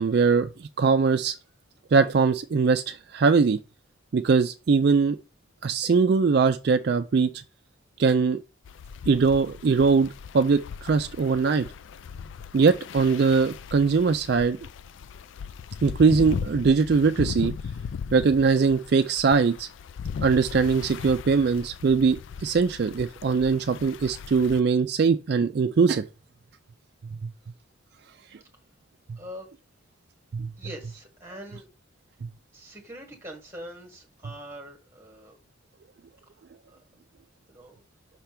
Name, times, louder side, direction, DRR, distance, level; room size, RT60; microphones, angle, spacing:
voice 1, 0.0-1.4 1.9-3.6 4.1-5.2 5.6-7.3 8.0-8.4 9.1-10.1 10.3-11.7 12.5-14.6 15.8-17.5 18.1-19.7 20.2-26.0 27.2-27.3 30.3-30.5, right 5 dB, 55° right, 0.4 m, -21 dB
sound 1, 8.7-24.6, left 6 dB, 70° left, 0.3 m, -38 dB
voice 2, 29.2-29.5 30.6-31.7 32.5-35.4 36.7-36.8 37.5-37.8, equal, 15° right, 1.7 m, -43 dB
5.8 x 3.4 x 5.8 m
head